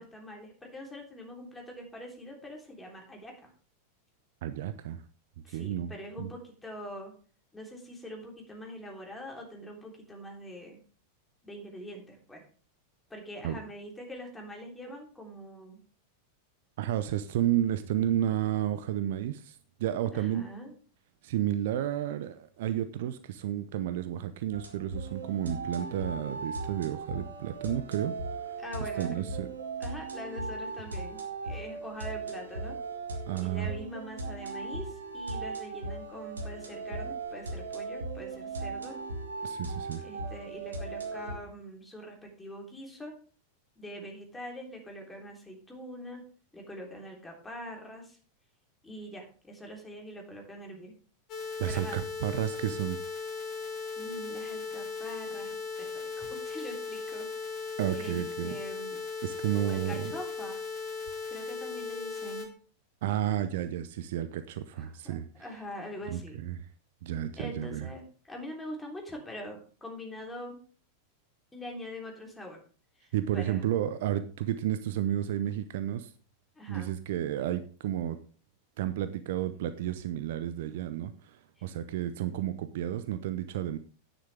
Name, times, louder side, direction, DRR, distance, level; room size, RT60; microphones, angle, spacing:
voice 1, 0.0-3.5 5.4-7.1 7.5-10.8 11.4-12.4 13.1-15.8 20.1-20.7 28.6-29.3 29.8-32.8 33.4-39.0 40.0-43.1 43.8-46.2 46.5-48.2 48.8-51.0 51.7-52.0 54.0-57.3 57.9-59.0 59.6-60.6 61.3-62.5 64.7-66.4 67.4-70.6 71.5-72.6 73.0-73.6 76.6-76.9 81.6-81.7, equal, 10° left, 0 dB, 3.4 m, -44 dB
voice 2, 4.4-5.0 5.5-5.9 6.2-6.3 13.4-13.6 16.8-20.4 21.2-28.5 28.8-29.5 33.3-33.7 39.4-40.0 51.6-53.0 57.8-58.6 59.2-60.2 63.0-65.4 66.1-66.7 67.0-67.9 73.1-76.1 76.7-78.2 78.8-83.8, right 11 dB, 55° right, 12 dB, 0.7 m, -32 dB
sound 1, 24.5-41.3, right 3 dB, 75° right, 2.0 m, -38 dB
sound 2, 51.3-62.5, left 5 dB, 35° left, 2.5 m, -37 dB
10.0 x 9.6 x 3.5 m, 0.39 s
figure-of-eight pair, 90°, 0 cm